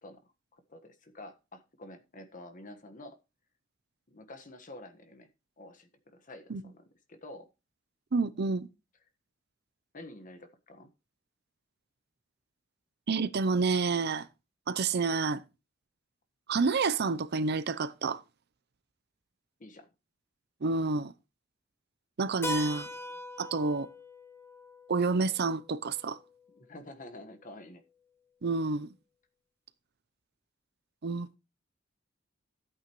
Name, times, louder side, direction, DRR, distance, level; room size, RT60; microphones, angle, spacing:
voice 1, 0.5-3.2 4.1-5.3 5.6-7.5 9.9-10.9 19.6-19.9 26.5-27.8, left 1 dB, 45° left, 1.4 m, -49 dB
voice 2, 8.1-8.7 13.1-14.3 14.7-15.4 16.5-18.2 20.6-21.1 22.2-22.9 23.4-23.9 24.9-26.2 28.4-28.9 31.0-31.4, right 4 dB, 55° right, 0.6 m, -29 dB
Keyboard (musical), 22.4-26.9, left 1 dB, 10° left, 1.2 m, -41 dB
13.0 x 8.6 x 3.1 m
head